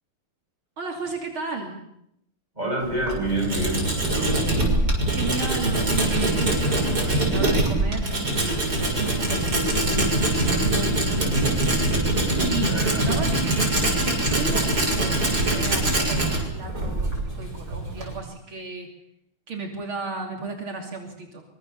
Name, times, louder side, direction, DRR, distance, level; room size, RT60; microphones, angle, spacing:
voice 1, 0.8-1.8 5.1-11.6 12.4-13.8 14.2-17.1 17.4-18.9 19.5-21.4, right 4 dB, 70° right, 2 dB, 3.6 m, -34 dB
voice 2, 2.6-4.3 12.6-13.1, right 1 dB, 20° right, 1 dB, 8.0 m, -28 dB
Tools, 2.8-18.2, right 1 dB, 45° right, 7.2 m, -23 dB
24.5 x 24.5 x 7.0 m, 0.77 s
omnidirectional pair, 2.3 m